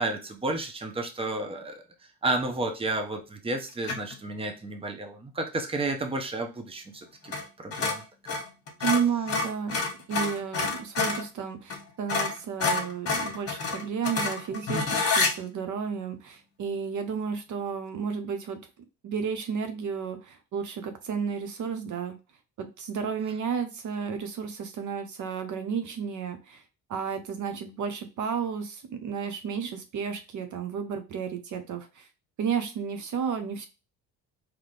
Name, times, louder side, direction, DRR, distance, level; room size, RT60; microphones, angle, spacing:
voice 1, 0.0-1.8 2.2-8.0, right 2 dB, 15° right, 4 dB, 0.8 m, -32 dB
sound 1, 3.8-4.2 7.3-7.5 7.7-11.3 11.7-11.8 12.1-15.3, left 4 dB, 40° left, 1.5 m, -28 dB
voice 2, 8.8-9.8 10.1-18.6 19.0-22.2 22.6-26.6 26.9-32.1 32.4-33.7, right 6 dB, 55° right, 7 dB, 0.8 m, -32 dB
3.9 x 3.1 x 3.3 m, 0.29 s
cardioid pair, 100°, 36 cm